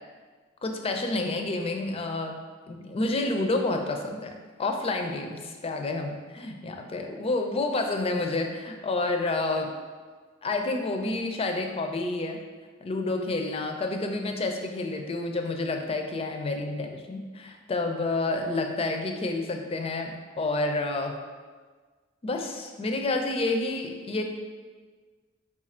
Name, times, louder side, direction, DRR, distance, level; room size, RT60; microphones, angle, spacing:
voice 1, 0.6-2.4 2.7-4.3 4.6-9.7 10.4-12.4 12.8-21.1 22.2-24.2, left 2 dB, 30° left, 4 dB, 0.4 m, -29 dB
4.6 x 2.4 x 4.2 m, 1.5 s
head